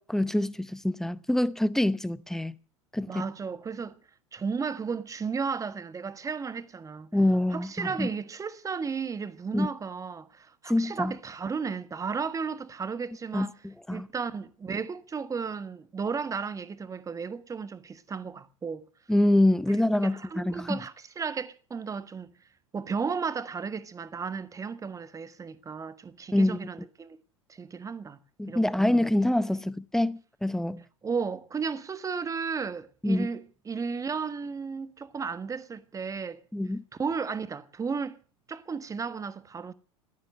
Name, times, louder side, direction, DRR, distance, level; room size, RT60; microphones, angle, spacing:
voice 1, 0.1-2.6 2.9-3.2 7.1-8.1 9.5-9.7 10.7-11.1 13.3-14.1 19.1-20.8 26.3-26.6 28.4-30.8 33.0-33.3 36.5-36.8, left 1 dB, ahead, 0.7 m, -25 dB
voice 2, 3.1-4.0 4.3-7.1 7.5-13.6 13.9-18.8 20.0-22.3 22.7-27.2 27.5-28.2 28.5-29.0 31.0-36.4 37.0-38.2 38.5-39.7, right 5 dB, 20° right, 1.3 m, -34 dB
16.0 x 12.5 x 6.6 m
figure-of-eight pair, 85°, 18 cm